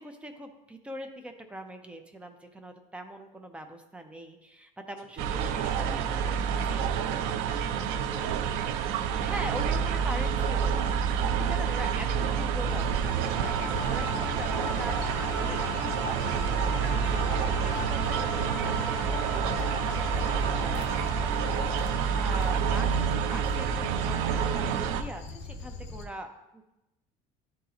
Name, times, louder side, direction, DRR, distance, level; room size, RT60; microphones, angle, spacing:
voice 1, 0.0-6.0 6.7-7.6 9.1-26.7, right 1 dB, 10° right, 6 dB, 0.4 m, -42 dB
sound 1, 5.2-25.0, right 7 dB, 75° right, 0.5 m, -28 dB
voice 2, 5.3-8.7 9.1-9.7 12.2-12.6, right 1 dB, 40° right, -6 dB, 2.6 m, -44 dB
Dog, 12.7-26.0, left 3 dB, 50° left, 0.8 m, -40 dB
sound 2, 13.1-24.1, left 2 dB, 20° left, 1.1 m, -39 dB
11.0 x 4.0 x 2.8 m, 0.93 s
cardioid pair, 165°, 15 cm